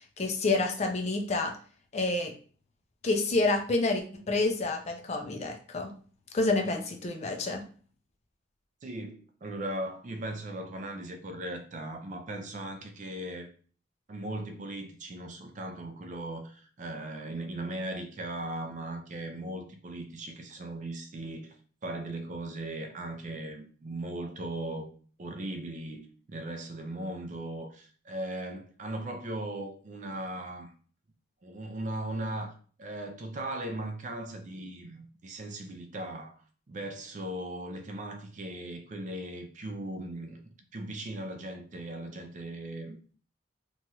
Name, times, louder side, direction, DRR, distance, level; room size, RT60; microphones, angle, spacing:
voice 1, 0.2-1.5 1.9-2.3 3.0-5.9 6.3-7.6, left 3 dB, 35° left, 0.4 m, -28 dB
voice 2, 8.8-13.5 14.1-21.6 21.8-24.9 25.2-30.7 31.4-32.5 32.8-36.4 36.7-40.4 40.7-43.0, right 1 dB, 40° right, 0.4 m, -38 dB
3.0 x 2.3 x 2.7 m
head